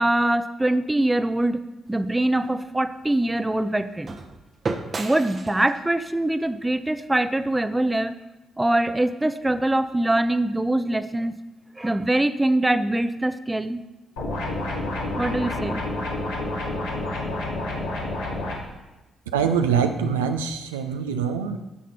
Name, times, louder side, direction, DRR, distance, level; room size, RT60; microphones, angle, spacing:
voice 1, 0.0-4.1 5.0-8.1 8.6-11.4 11.8-13.8 15.2-15.8, right 1 dB, 15° right, 12 dB, 0.6 m, -23 dB
sound 1, 1.8-8.0, right 3 dB, 40° right, 0.9 m, -37 dB
sound 2, 14.2-18.5, left 2 dB, 80° left, 2.1 m, -29 dB
voice 2, 19.3-21.6, right 7 dB, 85° right, 6 dB, 0.5 m, -24 dB
9.6 x 7.5 x 4.0 m, 1.1 s
figure-of-eight pair, 40°, 0 cm